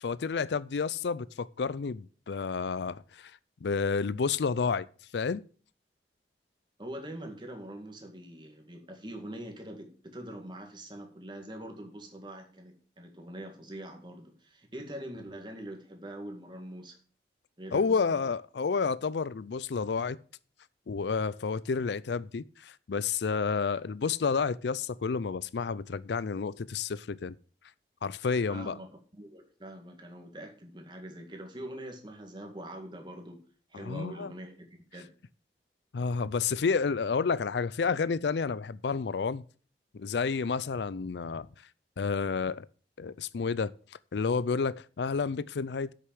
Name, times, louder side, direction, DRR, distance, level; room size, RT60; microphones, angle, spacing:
voice 1, 0.0-3.3 3.6-4.9 5.1-5.4 17.7-20.2 20.9-27.4 28.0-28.8 33.7-34.3 35.9-39.4 39.9-41.5 42.0-42.7 43.0-43.7 44.1-45.9, left 5 dB, 75° left, 0.5 m, -30 dB
voice 2, 6.8-17.0 17.6-18.3 28.5-33.4 33.7-35.1, right 1 dB, 25° right, 1.9 m, -43 dB
7.9 x 6.7 x 7.5 m
head